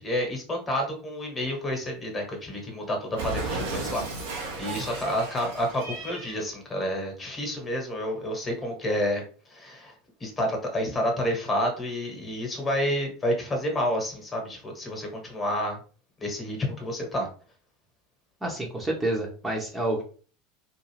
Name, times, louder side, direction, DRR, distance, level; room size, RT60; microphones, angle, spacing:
voice 1, 0.0-9.2 9.5-9.9 10.2-15.8 16.2-17.3, equal, 25° left, 1 dB, 1.1 m, -29 dB
Cat, 3.2-6.5, right 3 dB, 65° right, 0.7 m, -34 dB
voice 2, 18.4-20.0, right 1 dB, 15° right, -1 dB, 0.8 m, -28 dB
2.5 x 2.3 x 3.3 m, 0.40 s
figure-of-eight pair, 80°, 0 cm